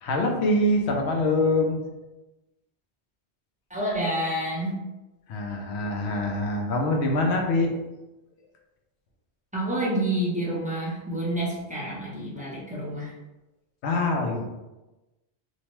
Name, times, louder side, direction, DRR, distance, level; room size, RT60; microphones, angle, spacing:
voice 1, 0.0-1.8 5.3-7.7 13.8-14.5, left 2 dB, 80° left, 1 dB, 0.9 m, -24 dB
voice 2, 3.7-4.8 9.5-13.1, right 1 dB, 10° right, -7 dB, 0.5 m, -28 dB
2.8 x 2.1 x 2.9 m, 1.0 s
omnidirectional pair, 1.1 m